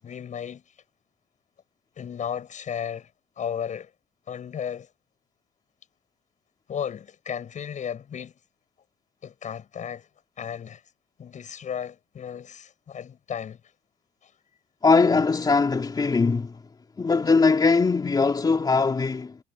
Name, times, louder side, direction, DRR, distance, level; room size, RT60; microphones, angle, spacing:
voice 1, 0.0-0.6 2.0-3.1 3.4-3.9 4.3-4.9 6.7-8.3 9.2-10.1 10.4-10.8 11.2-13.6 14.2-14.3, left 8 dB, 45° left, 7.5 m, -34 dB
voice 2, 14.8-16.6 17.0-19.4, left 4 dB, 25° left, 3.4 m, -21 dB
cardioid pair, 110°, 17 cm